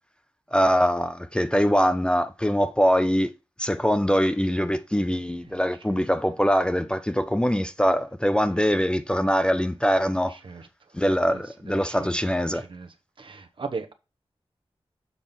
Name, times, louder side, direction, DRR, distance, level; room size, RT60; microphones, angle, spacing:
voice 1, 0.5-3.3 3.6-10.4 10.9-12.6, equal, 10° left, 0.4 m, -23 dB
voice 2, 10.3-10.7 11.3-11.4 11.7-12.1 12.5-12.9 13.2-13.9, right 4 dB, 55° right, 0.9 m, -37 dB
7.2 x 3.7 x 5.9 m
wide cardioid pair, 85°, 10 cm